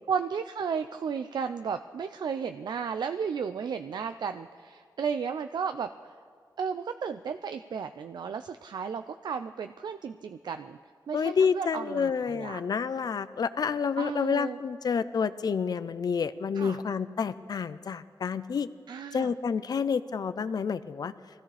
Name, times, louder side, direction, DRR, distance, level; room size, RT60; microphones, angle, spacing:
voice 1, 0.1-6.1 6.6-10.8 11.1-12.6 14.0-14.6 16.5-16.8 18.9-19.3, right 6 dB, 75° right, 9 dB, 0.4 m, -34 dB
voice 2, 11.1-18.7 19.1-21.1, left 6 dB, 65° left, 13 dB, 0.5 m, -29 dB
23.5 x 16.0 x 3.4 m, 2.1 s
wide cardioid pair, 115°, 7 cm